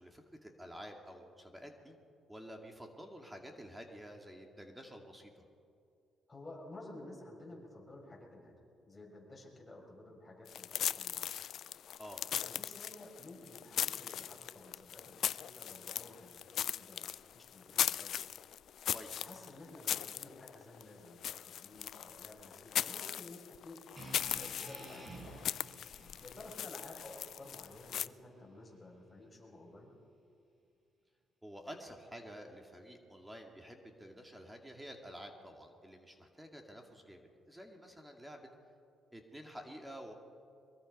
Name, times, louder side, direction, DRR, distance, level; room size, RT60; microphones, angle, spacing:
voice 1, 0.0-1.9 2.3-5.3 12.0-12.2 18.9-19.2 31.4-38.5 39.1-40.1, equal, 10° right, 3 dB, 2.4 m, -50 dB
voice 2, 6.3-8.5 8.9-11.3 12.3-17.1 17.3-18.2 19.1-23.8 24.3-25.5 26.2-29.9, left 2 dB, 20° left, -2 dB, 6.5 m, -53 dB
sound 1, 10.5-28.1, left 10 dB, 70° left, 0.4 m, -39 dB
sound 2, 24.0-28.1, right 2 dB, 35° right, 6.6 m, -52 dB
23.0 x 22.5 x 5.5 m, 2.4 s
cardioid pair, 90°, 0 cm